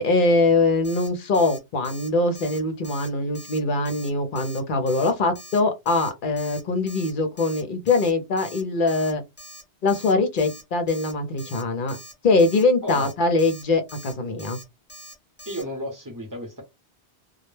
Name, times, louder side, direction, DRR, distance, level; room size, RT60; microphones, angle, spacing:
voice 1, 0.0-9.2 9.8-12.0 12.2-14.6, left 3 dB, 55° left, 0.7 m, -22 dB
Alarm, 0.8-1.1 1.3-1.6 1.8-2.1 2.4-2.6 2.8-3.1 3.3-3.6 3.9-4.1 4.4-4.6 4.9-5.1 5.4-5.6 5.9-6.1 6.4-6.6 6.9-7.1 7.4-7.6 7.9-8.1 8.4-8.6 8.9-9.1 9.4-9.6 9.9-10.1 10.4-10.6 10.9-11.1 11.4-11.6 11.9-12.1 12.4-12.6 12.9-13.1 13.4-13.6 13.9-14.1 14.4-14.6 14.9-15.1 15.4-15.6, equal, 10° left, 0.8 m, -43 dB
voice 2, 15.5-16.6, equal, 20° right, 0.7 m, -33 dB
2.2 x 2.1 x 3.1 m
omnidirectional pair, 1.1 m